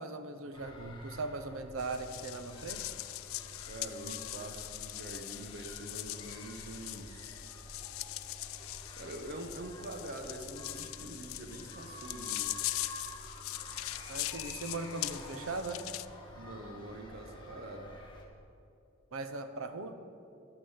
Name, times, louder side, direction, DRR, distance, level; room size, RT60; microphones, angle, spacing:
voice 1, 0.0-2.8 14.1-15.9 19.1-20.0, right 3 dB, 80° right, 9 dB, 0.7 m, -39 dB
sound 1, 0.5-18.2, equal, 25° left, 1.3 m, -50 dB
sound 2, 1.8-16.1, left 17 dB, 80° left, 0.3 m, -41 dB
voice 2, 3.7-7.3 8.9-12.5 16.3-17.9, right 1 dB, 50° right, 5 dB, 0.9 m, -45 dB
11.5 x 6.0 x 7.1 m, 2.5 s
head